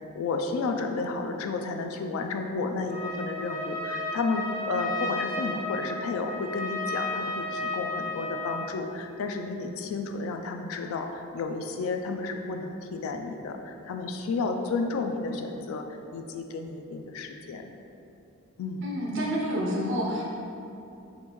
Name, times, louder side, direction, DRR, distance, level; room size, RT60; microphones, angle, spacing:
voice 1, 0.2-15.8 16.1-17.7 18.6-18.8, left 3 dB, 75° left, 7 dB, 0.3 m, -32 dB
Trumpet, 2.9-8.8, left 2 dB, 20° left, 1.4 m, -33 dB
voice 2, 18.8-20.2, equal, 65° right, -4 dB, 0.7 m, -28 dB
3.5 x 2.6 x 2.9 m, 2.7 s
head